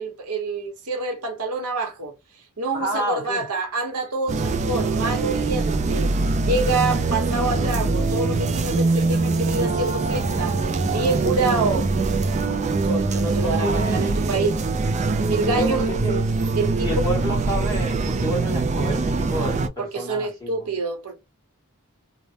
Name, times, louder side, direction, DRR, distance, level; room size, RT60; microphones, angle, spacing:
voice 1, 0.0-2.1 2.6-6.1 6.4-10.6 10.9-11.9 12.8-14.6 15.3-15.8 16.6-16.9 19.8-21.1, right 3 dB, 80° right, 0.9 m, -27 dB
voice 2, 2.7-3.4 13.4-14.4 15.5-16.6 16.8-20.7, equal, 20° left, 1.6 m, -30 dB
sound 1, 4.3-19.7, right 3 dB, 30° right, 0.4 m, -23 dB
3.2 x 2.1 x 2.7 m
head